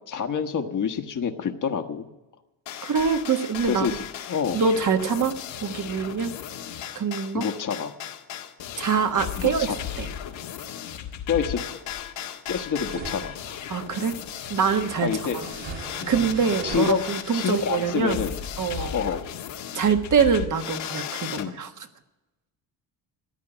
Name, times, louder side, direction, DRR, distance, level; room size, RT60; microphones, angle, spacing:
voice 1, 0.1-2.1 3.7-4.0 4.3-4.6 7.3-7.9 9.4-9.8 11.3-11.6 12.5-13.6 15.0-15.4 16.0-16.1 16.6-17.0 17.3-18.4 18.7-19.3 21.4-21.6, left 6 dB, 40° left, 6 dB, 1.4 m, -27 dB
sound 1, 2.7-21.5, left 10 dB, 80° left, 1.8 m, -36 dB
voice 2, 2.8-4.0 4.5-6.3 6.9-7.5 8.8-9.7 10.0-10.1 13.7-14.2 14.5-15.1 15.3-15.5 16.1-18.2 18.6-19.0 19.7-21.7, right 6 dB, 40° right, 7 dB, 1.5 m, -24 dB
sound 2, 12.9-18.6, right 5 dB, 75° right, 3.2 m, -41 dB
14.0 x 10.0 x 9.1 m, 1.1 s
cardioid pair, 95°, 45 cm